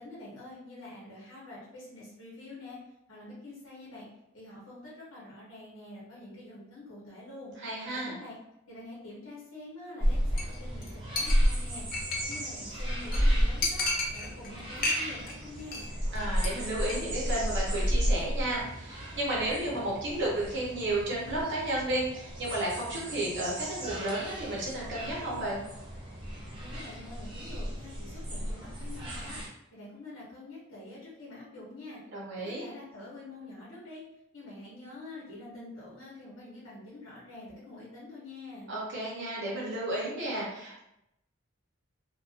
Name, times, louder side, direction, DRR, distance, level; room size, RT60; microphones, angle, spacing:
voice 1, 0.0-2.8 3.1-4.1 4.3-7.5 7.8-8.4 8.7-11.8 12.2-13.8 14.1-15.9 26.6-29.4 29.7-32.0 32.4-34.0 34.3-38.7, left 2 dB, 75° left, -6 dB, 0.8 m, -46 dB
voice 2, 7.6-8.2 16.1-25.6 32.1-32.7 38.7-40.8, right 1 dB, 60° right, -5 dB, 0.7 m, -32 dB
sound 1, 10.0-29.5, equal, 25° right, 0.6 m, -33 dB
Chink clink, 10.4-10.6 10.8-10.9 11.2-12.5 12.8-12.9 13.1-13.2 13.6-14.5 14.8-15.3 15.6-15.9 16.1-16.5 16.8-16.9, left 2 dB, 45° left, 0.5 m, -32 dB
2.5 x 2.2 x 2.4 m, 0.84 s
head